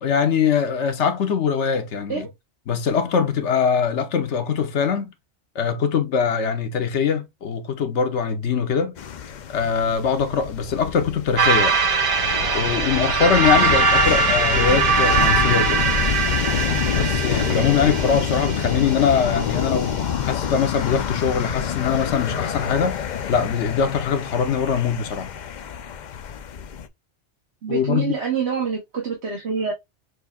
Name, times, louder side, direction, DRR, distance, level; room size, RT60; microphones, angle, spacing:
voice 1, 0.0-2.3 2.7-5.1 5.5-9.0 9.5-11.7 12.5-15.8 16.9-23.0 23.3-25.3 27.7-28.1, left 6 dB, 75° left, 1.1 m, -22 dB
sound 1, 9.0-26.9, left 8 dB, 55° left, 0.5 m, -27 dB
sound 2, 11.4-19.8, right 4 dB, 50° right, 1.3 m, -21 dB
voice 2, 27.6-29.7, right 6 dB, 65° right, 1.5 m, -26 dB
6.2 x 2.7 x 2.3 m
omnidirectional pair, 1.2 m